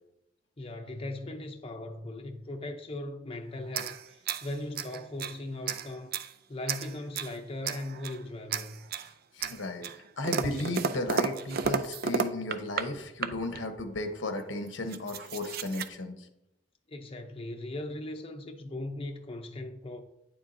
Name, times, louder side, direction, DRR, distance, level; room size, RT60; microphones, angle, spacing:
voice 1, 0.6-6.1 6.5-8.8 16.9-20.0, left 1 dB, 30° left, 0.6 m, -39 dB
sound 1, 3.7-5.4 5.7-6.3 6.7-7.4 7.6-8.2 8.5-9.1 9.4-12.9 13.2-13.6 14.4-14.5 14.7-15.9, right 6 dB, 55° right, 0.5 m, -33 dB
voice 2, 9.3-9.9 10.2-16.3, left 2 dB, 85° left, 1.0 m, -34 dB
9.3 x 7.1 x 2.6 m
head